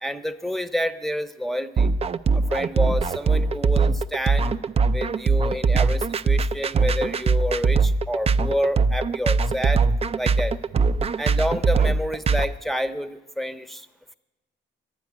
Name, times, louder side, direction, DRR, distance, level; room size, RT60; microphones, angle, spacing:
voice 1, 0.0-1.9 2.5-4.5 4.9-9.8 10.2-10.5 11.2-13.9, equal, ahead, 10 dB, 0.8 m, -28 dB
sound 1, 1.8-12.5, right 4 dB, 30° right, 0.4 m, -21 dB
11.5 x 9.4 x 9.3 m, 1.1 s
cardioid pair, 90°, 20 cm